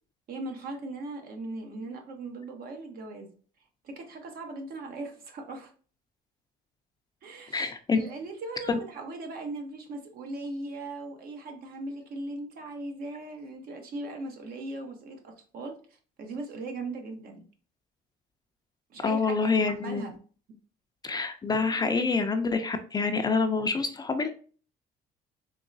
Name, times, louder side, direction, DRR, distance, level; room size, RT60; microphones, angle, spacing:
voice 1, 0.3-3.3 3.8-5.7 7.2-15.8 16.2-17.4 18.9-20.1, right 2 dB, 60° right, 4 dB, 1.0 m, -39 dB
voice 2, 7.5-8.0 8.7-8.8 19.0-20.1 21.0-24.3, left 4 dB, 25° left, 7 dB, 0.4 m, -26 dB
3.8 x 3.1 x 2.6 m, 0.40 s
cardioid pair, 110°, 17 cm